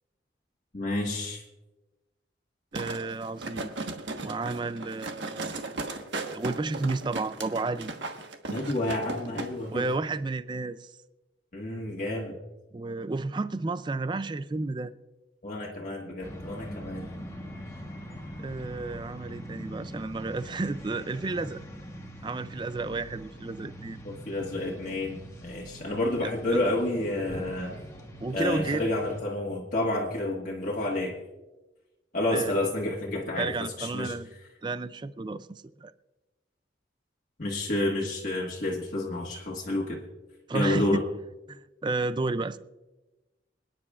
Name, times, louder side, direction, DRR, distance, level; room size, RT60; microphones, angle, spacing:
voice 1, 0.7-1.4 8.5-9.9 11.5-12.3 15.4-17.1 24.0-27.8 28.3-31.2 32.1-34.1 37.4-40.0 40.5-41.0, left 1 dB, 45° left, -3 dB, 1.6 m, -30 dB
voice 2, 2.7-3.7 4.2-6.0 6.3-7.9 9.7-10.9 12.7-14.9 18.4-21.6 22.2-24.0 26.2-26.6 28.2-28.9 32.3-32.5 33.4-34.3 34.6-35.9 40.5-40.9 41.5-42.6, right 3 dB, 25° right, 14 dB, 0.4 m, -32 dB
sound 1, 2.7-9.5 9.8-9.9, right 3 dB, 75° right, 1.3 m, -36 dB
sound 2, 16.2-29.2, equal, 15° left, 1.2 m, -43 dB
26.5 x 10.0 x 2.4 m, 1.1 s
head